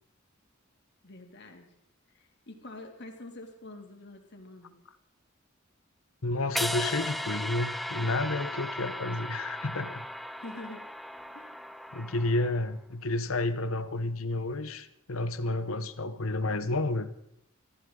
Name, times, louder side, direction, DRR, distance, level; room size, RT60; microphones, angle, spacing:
voice 1, 1.0-1.7 2.1-4.8 10.3-10.8 11.3-11.6, left 2 dB, 55° left, 3 dB, 2.9 m, -46 dB
voice 2, 6.2-10.0 11.9-17.1, left 2 dB, 85° left, 12 dB, 1.1 m, -31 dB
sound 1, 6.6-12.7, left 1 dB, ahead, 0.5 m, -36 dB
24.0 x 14.5 x 3.9 m, 0.74 s
head